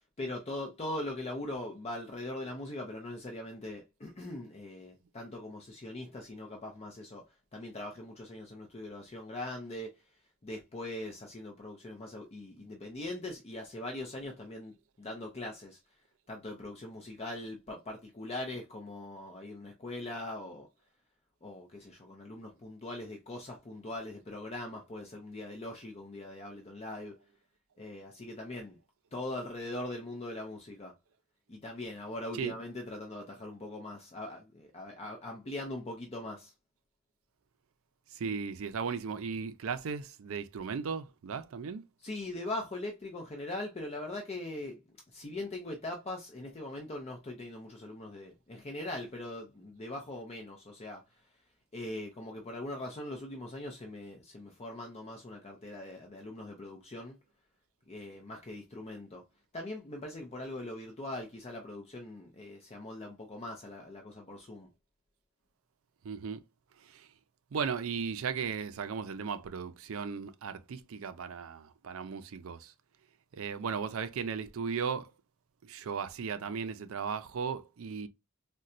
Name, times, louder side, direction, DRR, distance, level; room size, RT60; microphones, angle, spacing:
voice 1, 0.2-10.0 10.4-15.8 16.3-20.7 21.4-27.2 27.8-28.8 29.1-31.0 31.5-36.5 42.0-44.8 45.1-51.3 51.7-57.2 57.9-59.2 59.5-64.7, left 1 dB, 30° left, 0.6 m, -41 dB
voice 2, 38.1-41.8 66.0-66.4 66.8-67.1 67.5-72.7 73.3-75.1 75.6-78.1, right 6 dB, 75° right, 0.4 m, -36 dB
4.0 x 2.2 x 2.4 m
head